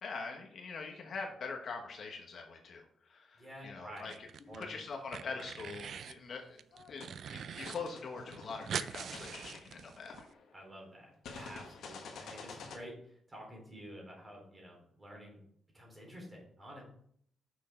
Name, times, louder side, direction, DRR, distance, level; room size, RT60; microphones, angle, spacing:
voice 1, 0.0-6.6 6.9-10.3, left 4 dB, 50° left, 3 dB, 1.2 m, -43 dB
voice 2, 3.4-4.1 4.5-4.7 5.2-5.4 10.5-15.4 15.7-16.8, equal, 15° right, -1 dB, 3.6 m, -50 dB
sound 1, 4.0-4.6 4.9-6.2 6.6-7.8 8.0-8.1 8.3-10.2, right 7 dB, 60° right, 0.4 m, -42 dB
sound 2, 6.7-7.1 7.6-10.6 11.2-12.8, left 4 dB, 90° left, 1.5 m, -49 dB
6.7 x 6.4 x 5.0 m, 0.65 s
wide cardioid pair, 155°, 0 cm